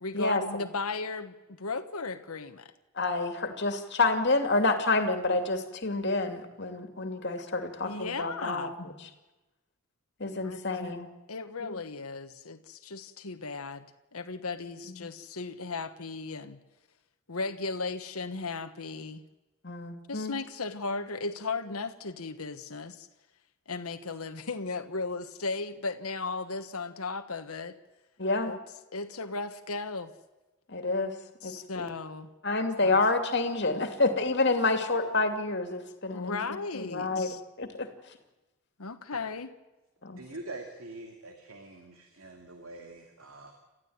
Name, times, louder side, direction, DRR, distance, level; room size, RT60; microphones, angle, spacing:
voice 1, 0.0-2.7 7.8-8.7 10.4-10.6 11.3-13.8 14.1-16.6 17.3-19.2 20.1-23.1 23.7-27.8 28.5-28.6 28.9-30.1 31.4-32.3 32.8-33.0 36.1-37.4 38.8-39.5, left 3 dB, 80° left, 7 dB, 1.3 m, -36 dB
voice 2, 3.0-8.9 10.2-11.1 15.0-15.1 19.6-20.3 28.2-28.5 30.7-31.2 31.4-31.9 32.4-36.4 36.7-37.3 37.6-37.9 40.0-40.2, left 3 dB, 50° left, 6 dB, 2.6 m, -28 dB
voice 3, 40.1-43.5, right 2 dB, 70° right, 3 dB, 2.7 m, -44 dB
29.0 x 14.5 x 9.4 m, 1.1 s
head